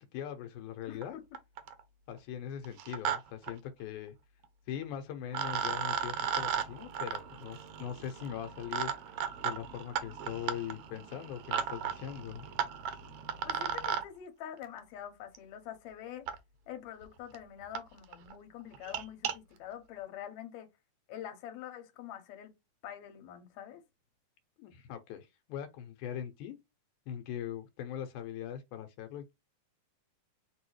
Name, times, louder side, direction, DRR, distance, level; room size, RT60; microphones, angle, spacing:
voice 1, 0.1-1.2 2.1-4.2 4.7-8.9 9.4-12.5 24.6-26.6 27.1-29.3, left 9 dB, 90° left, 2.1 m, -41 dB
voice 2, 0.9-1.2 13.4-16.3 16.7-20.7 21.1-22.5 22.8-23.8, left 10 dB, 70° left, 2.1 m, -45 dB
sound 1, 1.0-1.1 1.4-1.8 2.6-3.2 3.4-3.5 4.8-4.9 5.3-14.0 15.4-15.5 16.3-16.4 17.0-17.1 17.3-17.4 17.8-17.9 18.1-18.3 18.7-19.3, right 8 dB, 85° right, 1.3 m, -36 dB
6.1 x 2.7 x 3.1 m
omnidirectional pair, 3.5 m